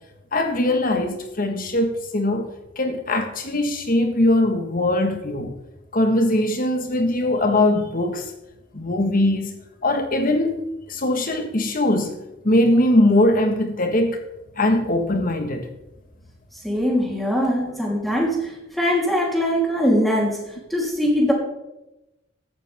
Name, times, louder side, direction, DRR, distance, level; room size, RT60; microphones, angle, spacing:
voice 1, 0.3-5.6 5.9-8.3 8.7-9.6 9.8-12.2 12.4-14.2 14.6-15.7 17.6-17.7, left 1 dB, 45° left, 1.4 m, -21 dB
voice 2, 16.6-20.4 20.7-21.3, equal, ahead, 3.3 m, -21 dB
15.5 x 12.0 x 3.5 m
head